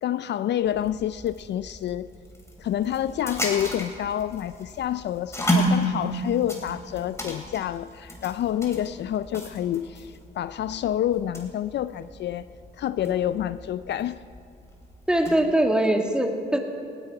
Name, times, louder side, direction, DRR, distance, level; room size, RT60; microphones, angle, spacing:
voice 1, 0.0-2.1 2.6-12.4 12.8-14.2, left 11 dB, 60° left, 14 dB, 0.4 m, -28 dB
sound 1, 0.6-15.5, equal, 15° left, 3.5 m, -33 dB
voice 2, 15.1-16.6, right 1 dB, 5° right, 3 dB, 1.9 m, -22 dB
19.0 x 16.0 x 4.8 m, 2.5 s
cardioid pair, 90°, 20 cm